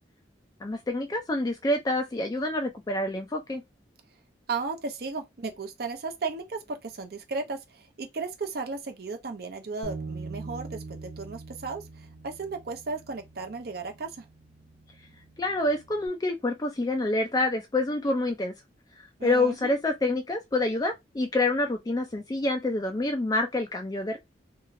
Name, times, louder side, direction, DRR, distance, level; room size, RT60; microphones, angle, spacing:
voice 1, 0.6-3.6 15.4-18.5 19.0-24.2, left 2 dB, 20° left, 0.3 m, -27 dB
voice 2, 4.5-14.2 19.2-19.7, right 4 dB, 55° right, 0.6 m, -35 dB
Bass guitar, 9.8-16.1, right 3 dB, 90° right, 1.0 m, -43 dB
2.9 x 2.8 x 2.5 m
head